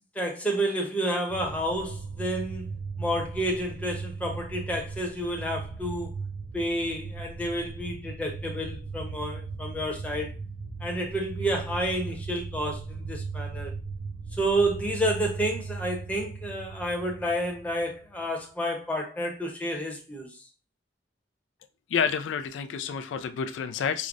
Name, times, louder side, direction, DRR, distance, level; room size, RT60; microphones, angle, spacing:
voice 1, 0.1-2.6 3.0-6.1 6.5-10.3 10.8-13.7 14.4-20.3, right 1 dB, 10° left, 0.7 m, -30 dB
sound 1, 1.3-18.1, right 4 dB, 75° right, 0.5 m, -38 dB
voice 2, 21.9-24.1, left 7 dB, 85° left, 0.3 m, -29 dB
4.7 x 2.1 x 2.5 m
head